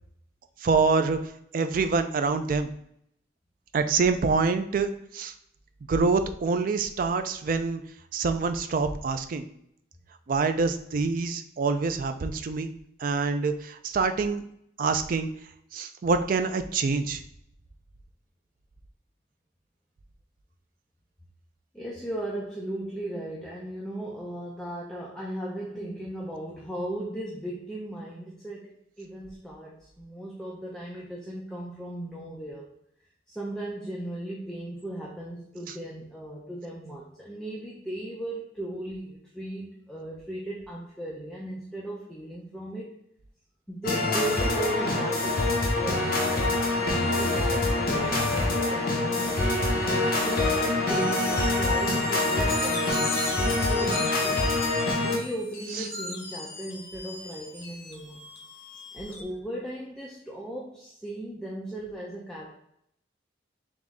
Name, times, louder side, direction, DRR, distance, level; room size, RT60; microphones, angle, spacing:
voice 1, 0.6-1.2 1.5-2.7 3.7-5.3 5.9-7.8 8.1-9.5 10.3-12.7 13.0-14.4 14.8-15.3 15.7-17.2, right 4 dB, 45° right, 8 dB, 0.3 m, -26 dB
voice 2, 21.7-32.7 33.3-43.0 43.7-49.5 50.2-54.5 55.0-58.3 58.9-62.5, right 1 dB, 5° left, -5 dB, 0.5 m, -37 dB
sound 1, 43.8-55.2, left 2 dB, 50° left, 0.9 m, -25 dB
sound 2, 52.4-59.2, left 2 dB, 65° left, 1.2 m, -38 dB
3.7 x 3.1 x 3.5 m, 0.74 s
head